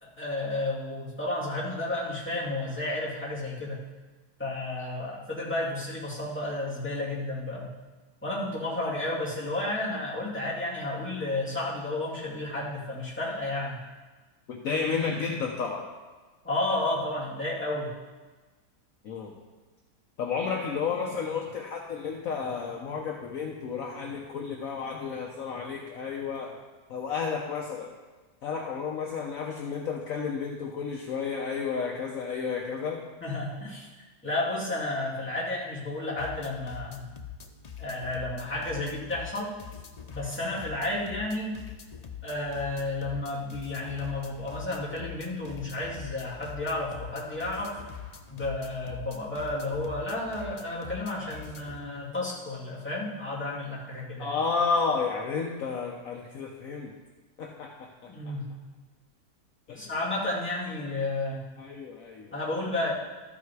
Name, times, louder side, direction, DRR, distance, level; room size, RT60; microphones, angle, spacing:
voice 1, 0.0-3.8 4.4-7.7 8.2-13.8 16.4-17.9 33.2-33.9 34.2-37.0 37.8-39.5 40.1-41.6 42.2-47.7 48.3-54.4 58.1-58.6 59.8-61.5 62.3-62.9, left 2 dB, 5° left, -7 dB, 2.4 m, -32 dB
voice 2, 14.5-15.9 19.0-19.3 20.2-26.5 26.9-27.9 28.4-33.0 54.2-56.9 57.4-58.3 59.7-59.9 61.6-62.3, left 5 dB, 60° left, 0 dB, 1.2 m, -32 dB
sound 1, 36.2-51.8, left 7 dB, 80° left, 0.3 m, -44 dB
12.5 x 5.8 x 4.7 m, 1.3 s
omnidirectional pair, 1.8 m